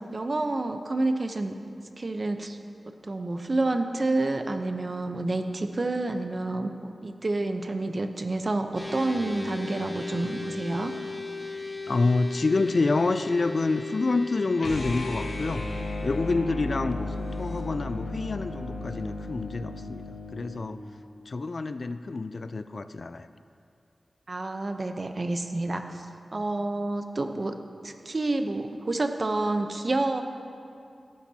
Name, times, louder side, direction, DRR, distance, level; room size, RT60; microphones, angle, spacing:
voice 1, 0.1-1.5 2.0-2.6 3.1-10.9 24.3-25.8 26.3-27.6 27.8-30.2, right 2 dB, 45° right, 6 dB, 0.8 m, -29 dB
sound 1, 8.8-15.3, left 3 dB, 20° left, 1.6 m, -37 dB
voice 2, 11.9-15.6 16.0-20.8 21.3-23.3, left 3 dB, 55° left, 12 dB, 0.4 m, -27 dB
sound 2, 14.5-20.6, left 2 dB, 85° left, 1.2 m, -34 dB
17.5 x 10.5 x 2.8 m, 2.5 s
wide cardioid pair, 65°, 0 cm